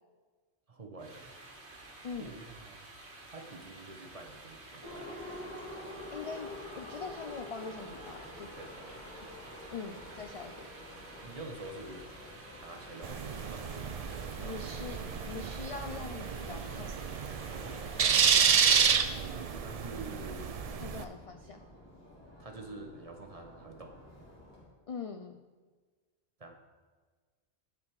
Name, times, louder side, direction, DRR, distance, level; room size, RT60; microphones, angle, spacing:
voice 1, 0.7-1.4 2.2-2.9 3.3-5.1 8.6-9.1 11.2-12.1 12.6-13.9 17.5-17.8 19.6-20.6 22.4-23.9 26.4-26.5, right 2 dB, 35° right, 3 dB, 0.9 m, -47 dB
sound 1, 1.0-19.0, right 2 dB, 75° right, 1.6 m, -51 dB
Subway metro underground, 4.8-24.6, left 1 dB, 20° left, 2.6 m, -49 dB
voice 2, 6.1-8.5 9.1-9.3 9.7-10.7 14.4-15.0 15.3-17.0 17.9-18.6 20.8-21.6 24.9-25.4, left 5 dB, 65° left, 6 dB, 0.3 m, -43 dB
sound 2, 13.0-21.0, right 7 dB, 55° right, 0.4 m, -30 dB
11.0 x 4.9 x 4.7 m, 1.4 s
omnidirectional pair, 1.1 m